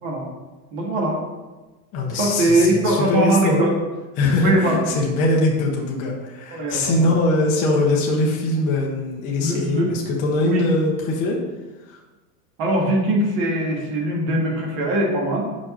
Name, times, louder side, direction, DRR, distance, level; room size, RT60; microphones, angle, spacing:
voice 1, 0.7-1.2 2.1-3.7 4.4-4.8 6.5-7.1 9.4-9.9 10.4-10.6 12.6-15.5, right 1 dB, 45° right, -1 dB, 1.7 m, -21 dB
voice 2, 1.9-3.7 4.2-11.4 11.9-12.0, left 2 dB, 20° left, -2 dB, 0.5 m, -22 dB
5.1 x 5.0 x 5.4 m, 1.2 s
supercardioid pair, 170°, 48 cm